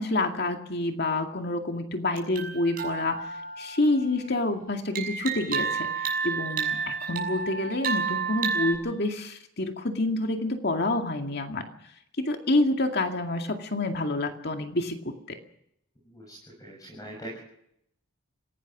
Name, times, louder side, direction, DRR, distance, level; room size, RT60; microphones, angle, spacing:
voice 1, 0.0-3.2 3.6-5.9 6.2-11.7 12.2-15.4, left 2 dB, 55° left, 5 dB, 2.2 m, -28 dB
sound 1, 2.2-4.4 5.0-8.7, right 5 dB, 45° right, 6.3 m, -31 dB
voice 2, 16.0-17.4, right 1 dB, 20° left, -3 dB, 7.7 m, -42 dB
26.5 x 17.5 x 6.1 m, 0.75 s
head